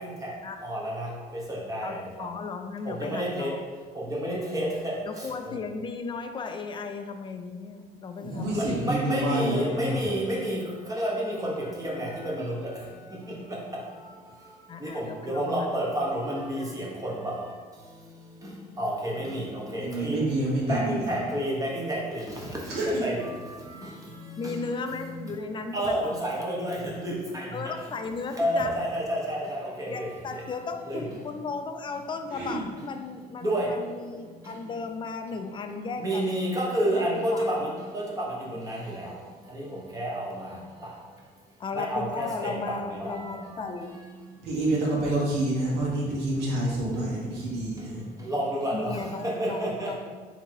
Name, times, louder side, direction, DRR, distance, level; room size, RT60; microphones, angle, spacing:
voice 1, 0.0-2.3 2.8-3.6 3.9-5.6 8.5-20.3 20.7-25.1 25.7-27.7 28.3-30.5 30.9-31.2 33.4-34.8 35.7-44.6 46.6-50.0, equal, 20° right, 1.2 m, -31 dB
voice 2, 1.8-3.6 5.1-8.9 14.7-15.7 24.4-26.1 27.5-28.7 29.9-36.4 36.8-37.5 41.6-44.0 48.7-50.0, left 4 dB, 30° left, 0.4 m, -35 dB
voice 3, 8.2-10.0 19.7-21.1 22.7-23.0 23.7-23.9 32.3-32.7 44.4-48.0, right 1 dB, 75° right, 1.2 m, -28 dB
3.6 x 2.9 x 4.5 m
cardioid pair, 110°, 17 cm